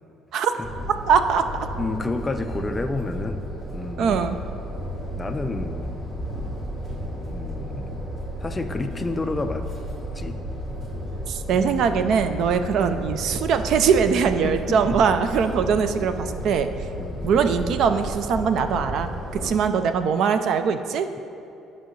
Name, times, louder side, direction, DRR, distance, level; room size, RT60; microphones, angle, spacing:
sound 1, 0.6-19.5, equal, 25° right, 1.1 m, -33 dB
voice 1, 1.1-1.4 4.0-4.4 11.3-16.7 17.2-19.1 19.4-21.1, right 6 dB, 55° right, 9 dB, 0.4 m, -21 dB
voice 2, 1.8-3.4 3.7-4.3 5.1-6.0 7.3-8.0 8.4-9.7 10.1-10.4 11.5-11.6 12.4-12.6 14.4-15.0 17.0-17.2 19.4-19.6, left 2 dB, 15° left, 7 dB, 0.3 m, -30 dB
11.0 x 5.5 x 3.1 m, 2.7 s
cardioid pair, 155°, 0 cm